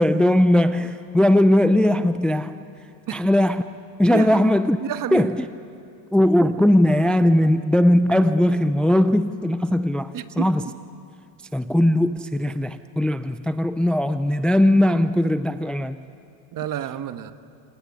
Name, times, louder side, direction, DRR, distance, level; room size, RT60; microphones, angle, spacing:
voice 1, 0.0-2.6 3.1-3.6 4.0-4.8 5.1-5.5 6.1-10.6 11.5-16.0, left 1 dB, ahead, 12 dB, 0.5 m, -19 dB
voice 2, 4.1-4.5 4.8-5.3 10.1-10.7 16.5-17.3, right 10 dB, 45° right, 11 dB, 1.4 m, -30 dB
28.0 x 18.5 x 9.7 m, 2.4 s
supercardioid pair, 105°, 46 cm